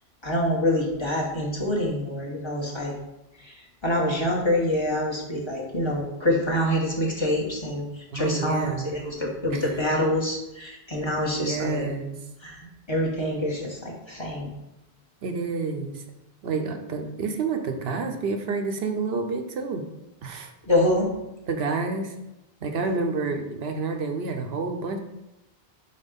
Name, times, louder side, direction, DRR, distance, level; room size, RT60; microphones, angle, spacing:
voice 1, 0.2-2.9 3.4-3.5 3.8-7.8 8.1-11.9 12.4-14.5 20.7-21.1, left 1 dB, 30° left, -3 dB, 1.1 m, -26 dB
voice 2, 8.1-9.0 9.5-9.7 11.4-12.1 15.2-16.0 16.4-19.8 20.2-20.5 21.5-22.1 22.6-25.0, right 4 dB, 80° right, 5 dB, 0.9 m, -29 dB
4.6 x 4.1 x 5.1 m, 0.93 s
omnidirectional pair, 1.0 m